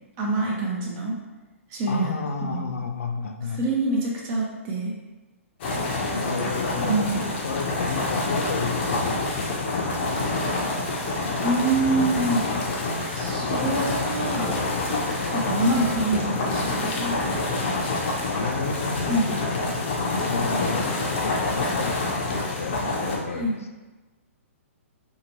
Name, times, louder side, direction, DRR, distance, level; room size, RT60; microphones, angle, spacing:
voice 1, 0.2-1.2 1.7-2.7 3.5-4.9 6.8-7.2 11.4-12.5 13.1-14.6 15.3-17.2 19.1-19.3 23.3-23.6, right 2 dB, 30° right, -3 dB, 0.6 m, -26 dB
voice 2, 1.9-3.6 6.2-7.1 7.4-10.2 15.6-16.0 18.3-20.0 20.3-22.8 23.1-23.7, left 5 dB, 80° left, 5 dB, 0.4 m, -33 dB
sound 1, 5.6-23.2, left 2 dB, 50° left, 0.7 m, -27 dB
2.8 x 2.4 x 2.9 m, 1.2 s
hypercardioid pair, 130°, 8 cm